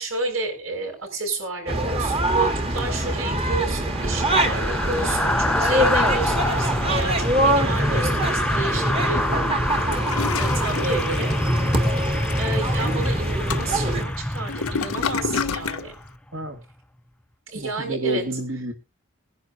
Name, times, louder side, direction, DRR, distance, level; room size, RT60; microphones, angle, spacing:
voice 1, 0.0-11.4 11.8-16.0 17.5-18.2, right 3 dB, 75° right, -1 dB, 6.2 m, -31 dB
sound 1, 1.7-14.0, right 1 dB, 30° right, 1.7 m, -24 dB
sound 2, 2.8-16.1 16.4-16.6, left 1 dB, 5° left, 0.5 m, -26 dB
Toilet flush, 9.7-15.9, left 5 dB, 90° left, 0.7 m, -31 dB
voice 2, 17.6-18.7, right 1 dB, 60° right, 5 dB, 1.8 m, -29 dB
21.5 x 10.5 x 2.5 m, 0.29 s
head